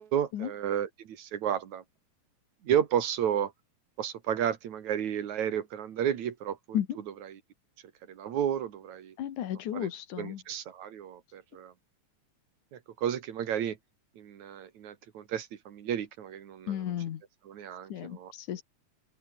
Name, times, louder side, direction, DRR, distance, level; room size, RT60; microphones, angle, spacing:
voice 1, 0.0-1.8 2.6-3.5 4.0-6.8 7.3-7.4 8.1-9.1 9.7-9.9 10.2-11.7 12.7-13.8 14.2-16.8 17.5-18.3, right 9 dB, 70° right, 3.1 m, -32 dB
voice 2, 9.2-10.4 16.7-17.2 17.9-18.6, left 10 dB, 80° left, 3.1 m, -33 dB
open air
omnidirectional pair, 3.5 m